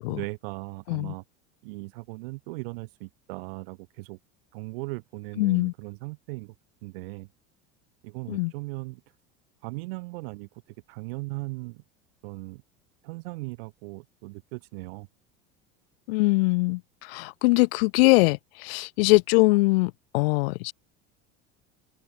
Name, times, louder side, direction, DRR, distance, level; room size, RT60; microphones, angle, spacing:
voice 1, 0.1-1.2 1.6-4.2 4.5-6.5 6.8-7.3 8.0-9.0 9.6-11.8 12.2-12.6 13.0-15.1, right 25 dB, 75° right, 6.2 m, -38 dB
voice 2, 5.4-5.7 8.3-8.5 16.1-20.7, left 25 dB, 80° left, 1.0 m, -22 dB
open air
cardioid pair, 175°, 29 cm